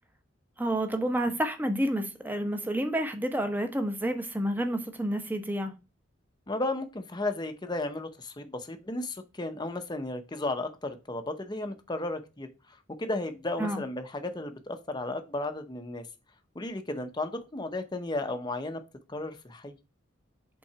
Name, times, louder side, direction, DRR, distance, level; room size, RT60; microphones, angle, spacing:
voice 1, 0.6-5.8 13.6-13.8, right 1 dB, 10° right, 0.9 m, -29 dB
voice 2, 6.5-16.0 16.5-18.8 19.1-19.8, left 2 dB, 20° left, 0.8 m, -34 dB
5.7 x 3.8 x 5.6 m
head